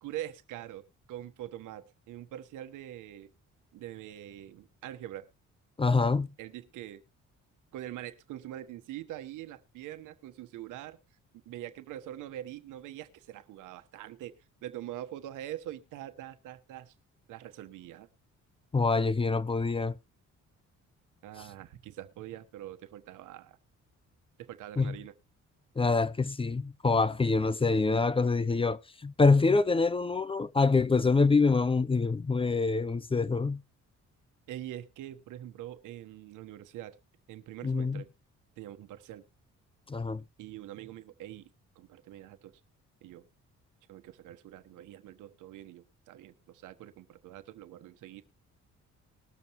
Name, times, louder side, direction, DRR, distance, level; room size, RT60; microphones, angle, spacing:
voice 1, 0.0-3.3 3.7-5.3 6.4-7.0 7.7-11.0 11.4-14.4 14.6-16.9 17.3-18.1 21.2-23.6 24.4-25.1 34.5-37.0 37.3-38.1 38.6-39.2 40.4-41.5 41.7-42.5 43.0-43.3 43.9-48.2, right 13 dB, 90° right, 1.2 m, -44 dB
voice 2, 5.8-6.3 18.7-20.0 24.8-25.0 25.8-33.6 37.6-38.0 39.9-40.2, left 4 dB, 20° left, 0.5 m, -26 dB
20.5 x 6.9 x 3.0 m
cardioid pair, 90°, 30 cm